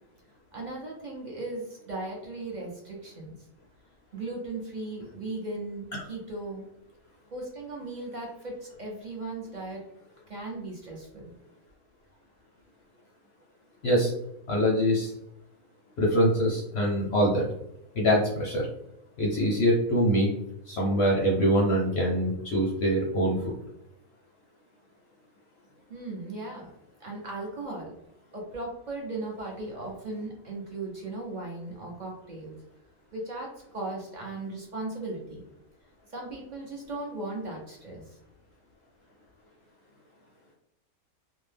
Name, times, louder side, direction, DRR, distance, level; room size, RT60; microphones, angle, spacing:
voice 1, 0.5-3.4 4.1-6.6 7.3-9.8 10.3-11.3 25.9-26.7 27.0-27.9 28.3-32.5 33.1-35.4 36.1-38.2, right 2 dB, 50° right, -2 dB, 0.5 m, -37 dB
voice 2, 14.5-15.1 16.0-17.4 17.9-18.7 19.2-20.3 20.7-23.5, equal, 65° left, -2 dB, 0.7 m, -24 dB
2.7 x 2.1 x 3.2 m, 0.82 s
omnidirectional pair, 1.5 m